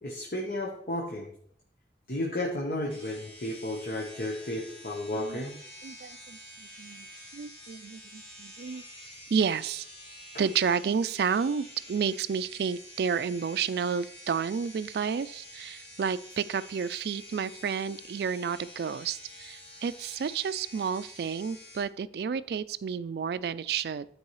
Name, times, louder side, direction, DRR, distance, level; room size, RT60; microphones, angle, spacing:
voice 1, 0.0-1.3 2.1-5.5, left 1 dB, 50° left, -1 dB, 1.0 m, -33 dB
sound 1, 2.9-21.8, equal, 30° left, 2.3 m, -48 dB
voice 2, 5.1-5.5 5.8-7.1 7.3-8.8 9.3-9.9 10.4-24.1, right 6 dB, 65° right, 16 dB, 0.3 m, -31 dB
12.5 x 4.6 x 3.1 m, 0.64 s
head